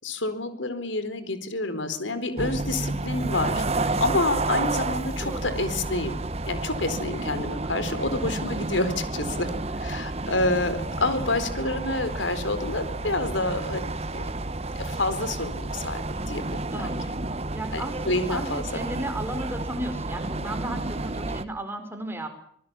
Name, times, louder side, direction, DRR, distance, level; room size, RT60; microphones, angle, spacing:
voice 1, 0.0-6.2 6.5-9.5 9.8-14.2 14.8-16.6 17.7-18.8, left 2 dB, 85° left, 12 dB, 4.3 m, -28 dB
sound 1, 2.4-21.4, right 2 dB, 35° right, 1.1 m, -31 dB
voice 2, 16.7-17.2 17.5-22.3, right 1 dB, 10° right, 6 dB, 5.1 m, -34 dB
26.5 x 19.5 x 7.5 m, 0.66 s
head